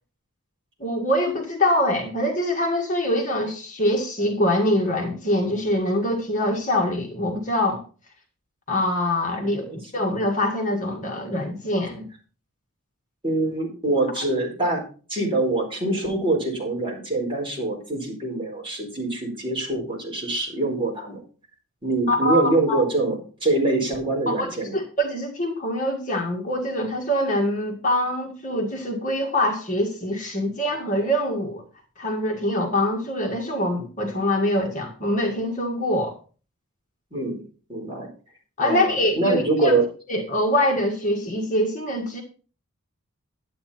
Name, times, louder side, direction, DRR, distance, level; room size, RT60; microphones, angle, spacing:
voice 1, 0.8-7.8 8.7-9.7 9.9-12.1 22.1-22.4 22.7-22.8 24.3-31.6 32.0-36.2 38.6-39.7 40.1-42.2, left 1 dB, 35° left, 1 dB, 1.8 m, -24 dB
voice 2, 13.2-14.8 15.1-21.2 21.8-24.7 37.1-37.4 37.7-38.1 38.6-39.9, right 2 dB, 25° right, -2 dB, 4.5 m, -24 dB
11.0 x 8.6 x 4.3 m, 0.37 s
head